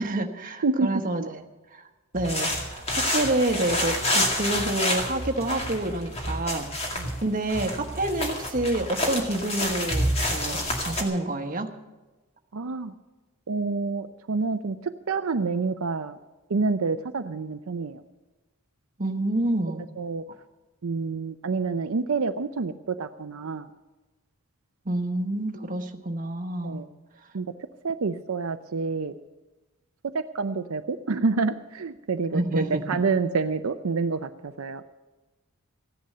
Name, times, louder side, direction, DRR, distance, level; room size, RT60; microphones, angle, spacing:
voice 1, 0.0-1.4 1.7-1.9 2.1-6.7 7.2-11.7 19.0-19.9 24.8-26.8 32.3-33.0, right 1 dB, 40° right, 5 dB, 1.2 m, -28 dB
sound 1, 2.1-11.0, left 1 dB, 30° left, 2.2 m, -28 dB
voice 2, 12.5-12.9 13.5-16.2 16.5-18.0 20.0-20.2 20.8-23.7 26.6-26.9 27.3-27.5 27.8-29.1 30.0-34.8, right 4 dB, 70° right, 7 dB, 0.6 m, -28 dB
15.0 x 10.5 x 6.7 m, 1.2 s
head